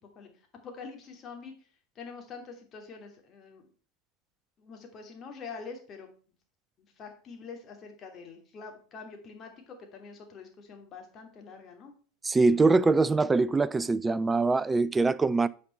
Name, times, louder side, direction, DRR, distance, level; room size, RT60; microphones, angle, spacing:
voice 1, 0.6-1.5 1.9-3.6 4.6-6.1 6.8-11.9, left 5 dB, 35° left, 2.6 m, -45 dB
voice 2, 12.2-15.5, right 3 dB, 15° right, 0.4 m, -23 dB
8.7 x 5.2 x 4.4 m
hypercardioid pair, 90°, 0 cm